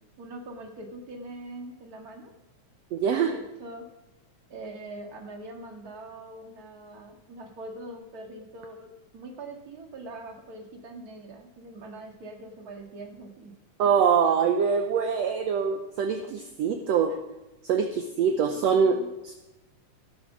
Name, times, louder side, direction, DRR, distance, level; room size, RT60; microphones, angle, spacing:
voice 1, 0.0-2.3 3.2-3.8 4.5-13.5 17.1-17.2 18.4-19.1, right 2 dB, 35° right, 2 dB, 2.0 m, -43 dB
voice 2, 2.9-3.3 13.8-17.1 17.6-19.0 19.2-19.3, right 6 dB, 70° right, 6 dB, 1.8 m, -24 dB
15.5 x 9.7 x 6.2 m, 0.97 s
omnidirectional pair, 3.6 m